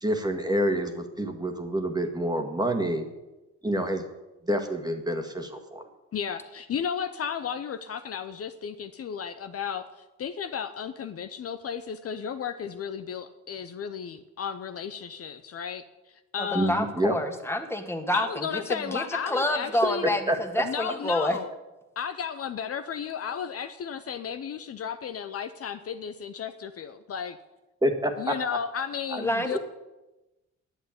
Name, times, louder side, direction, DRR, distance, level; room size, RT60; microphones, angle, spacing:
voice 1, 0.0-3.1 3.6-4.1 4.4-5.9 16.5-17.2 20.3-20.4 27.8-28.4 29.1-29.2 29.5-29.6, right 1 dB, 15° right, 5 dB, 1.7 m, -27 dB
voice 2, 6.1-16.8 18.1-20.1 20.6-21.5 22.0-27.4 28.2-29.6, left 7 dB, 50° left, 9 dB, 0.8 m, -34 dB
voice 3, 16.4-21.4 29.2-29.6, left 1 dB, 10° left, 5 dB, 1.7 m, -28 dB
10.0 x 8.0 x 8.9 m, 1.0 s
cardioid pair, 90°, 30 cm